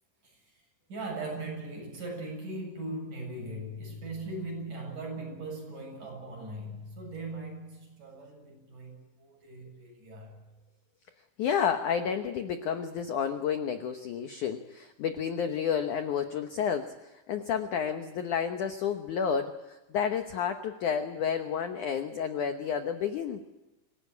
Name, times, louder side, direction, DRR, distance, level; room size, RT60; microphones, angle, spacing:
voice 1, 0.9-10.4, right 2 dB, 45° right, 1 dB, 9.0 m, -39 dB
voice 2, 11.4-23.4, left 7 dB, 75° left, 7 dB, 1.8 m, -31 dB
26.0 x 18.0 x 9.8 m, 1.0 s
omnidirectional pair, 5.2 m